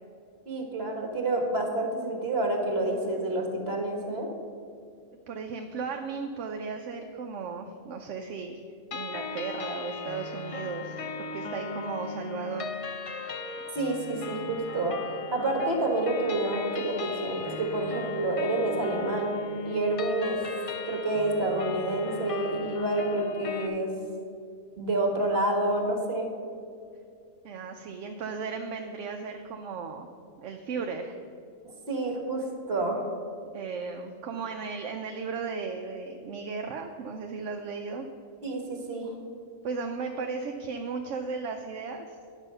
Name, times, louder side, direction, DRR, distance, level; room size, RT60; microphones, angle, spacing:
voice 1, 0.4-4.3 13.7-15.0 15.3-19.3 19.6-20.4 20.9-23.9 24.8-26.3 31.9-33.1 38.4-39.1, right 2 dB, 50° right, 2 dB, 1.6 m, -28 dB
voice 2, 5.3-8.6 8.9-12.8 27.4-30.1 30.4-31.2 33.5-38.1 39.6-42.2, right 5 dB, 70° right, 4 dB, 0.9 m, -36 dB
sound 1, 8.9-23.7, left 3 dB, 60° left, 0.3 m, -37 dB
10.0 x 6.2 x 5.5 m, 2.3 s
omnidirectional pair, 1.4 m